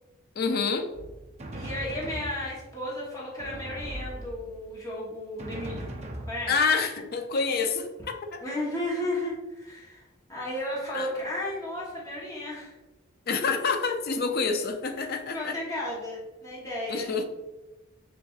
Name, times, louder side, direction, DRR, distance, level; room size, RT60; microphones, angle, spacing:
voice 1, 0.4-0.9 6.5-7.9 8.2-8.4 10.9-11.1 13.3-15.5 16.9-17.3, left 4 dB, 50° left, 6 dB, 0.4 m, -27 dB
Drum, 0.9-2.8 3.4-4.7 5.4-6.9, right 1 dB, 35° right, 0.6 m, -39 dB
voice 2, 1.5-5.9 6.2-6.6 8.4-10.0 10.3-12.8 14.3-14.4 15.3-17.1, left 1 dB, 15° left, -6 dB, 1.0 m, -34 dB
6.9 x 2.5 x 2.4 m, 1.1 s
head